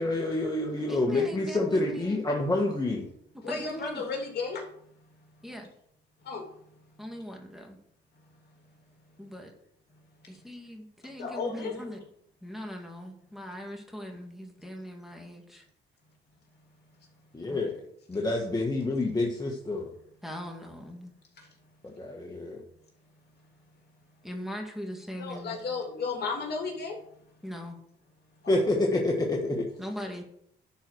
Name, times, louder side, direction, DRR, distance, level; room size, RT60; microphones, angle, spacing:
voice 1, 0.0-3.0 17.3-17.7 18.1-19.9 21.8-22.6 28.5-29.7, left 2 dB, 20° left, -1 dB, 1.6 m, -28 dB
voice 2, 0.9-2.2 3.5-4.0 5.4-5.7 7.0-7.8 9.2-9.5 10.3-12.0 12.4-15.6 17.5-17.6 20.2-21.1 24.2-25.6 27.4-27.8 29.8-30.2, equal, ahead, 1 dB, 2.1 m, -40 dB
voice 3, 3.4-4.7 6.2-6.5 11.2-12.0 21.4-21.5 25.2-27.0 28.4-28.6, left 4 dB, 55° left, 1 dB, 2.8 m, -34 dB
11.5 x 4.7 x 6.3 m, 0.70 s
cardioid pair, 90°, 20 cm